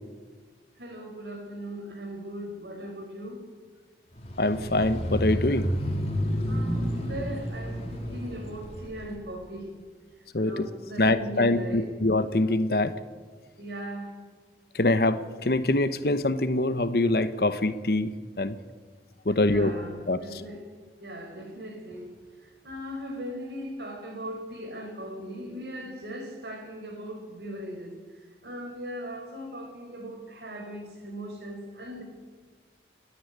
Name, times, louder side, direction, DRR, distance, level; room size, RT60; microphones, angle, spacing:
voice 1, 0.8-3.4 6.4-9.7 10.4-11.9 13.6-14.1 19.3-20.6 21.0-22.1 22.4-32.0, equal, 75° right, 3 dB, 5.1 m, -39 dB
sound 1, 4.2-9.1, equal, 35° left, 2.7 m, -30 dB
voice 2, 4.4-5.7 10.3-10.7 11.0-12.9 14.7-18.1 18.4-18.6 19.2-19.7 20.1-20.2, left 2 dB, 60° left, 12 dB, 1.0 m, -24 dB
28.5 x 10.0 x 9.5 m, 1.5 s
head